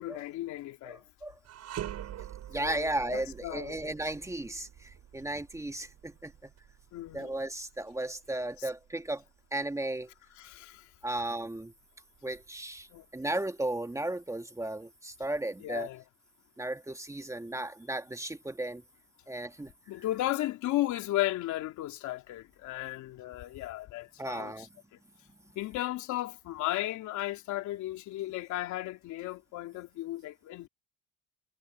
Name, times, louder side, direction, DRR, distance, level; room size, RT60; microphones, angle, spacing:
voice 1, 0.0-1.0 2.6-3.9 6.9-7.3 8.6-8.7 10.4-10.9 12.9-13.1 15.6-16.0 19.9-24.7 25.5-30.7, left 15 dB, 75° left, 3.3 m, -35 dB
voice 2, 0.9-1.4 2.5-6.5 7.1-9.2 9.5-10.1 11.0-11.7 12.2-15.9 16.6-18.8 19.3-19.7 24.2-24.7, right 1 dB, 10° right, 1.7 m, -35 dB
sound 1, 1.4-10.7 11.1-11.3 12.1-13.0, right 11 dB, 60° right, 7.8 m, -46 dB
cardioid pair, 100°, 29 cm